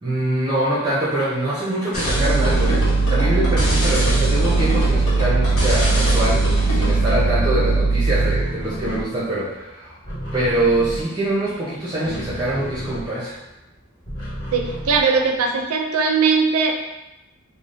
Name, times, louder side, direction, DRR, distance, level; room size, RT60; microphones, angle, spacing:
voice 1, 0.0-2.8 3.1-9.9 10.3-13.4, right 1 dB, 20° right, -8 dB, 0.5 m, -24 dB
sound 1, 1.9-7.1, left 1 dB, 80° left, 0.9 m, -26 dB
sound 2, 2.0-8.5, right 3 dB, 60° left, 0.4 m, -19 dB
sound 3, 2.1-7.7 8.0-13.5 13.8-15.6, equal, 40° left, 1.2 m, -32 dB
voice 2, 14.5-16.7, right 5 dB, 85° right, 2 dB, 0.4 m, -19 dB
3.2 x 2.1 x 2.5 m, 0.98 s
head